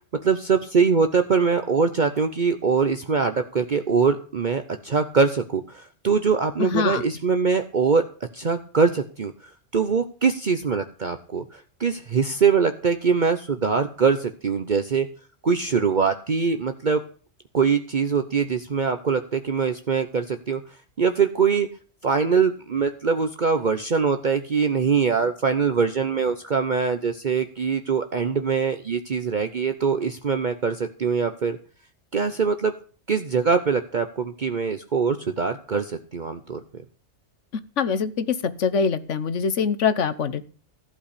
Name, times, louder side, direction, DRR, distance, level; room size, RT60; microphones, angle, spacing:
voice 1, 0.2-8.0 8.3-9.3 9.7-15.1 15.4-17.0 17.5-20.6 21.0-21.7 22.0-31.6 32.1-32.7 33.1-36.6, right 5 dB, 45° right, 7 dB, 1.0 m, -23 dB
voice 2, 6.6-7.0 37.8-40.5, left 6 dB, 80° left, 14 dB, 1.4 m, -24 dB
15.0 x 5.4 x 8.3 m, 0.41 s
omnidirectional pair, 1.2 m